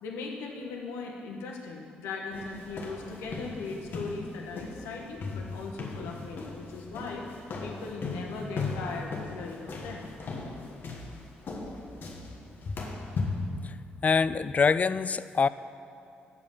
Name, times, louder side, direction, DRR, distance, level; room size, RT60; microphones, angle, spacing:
voice 1, 0.0-7.3 7.6-10.1, left 4 dB, 85° left, 0 dB, 1.2 m, -39 dB
sound 1, 2.3-13.5, left 3 dB, 55° left, 1.3 m, -37 dB
voice 2, 14.0-15.5, left 5 dB, 35° left, 15 dB, 0.3 m, -24 dB
8.4 x 5.2 x 7.2 m, 2.6 s
supercardioid pair, 55°, 4 cm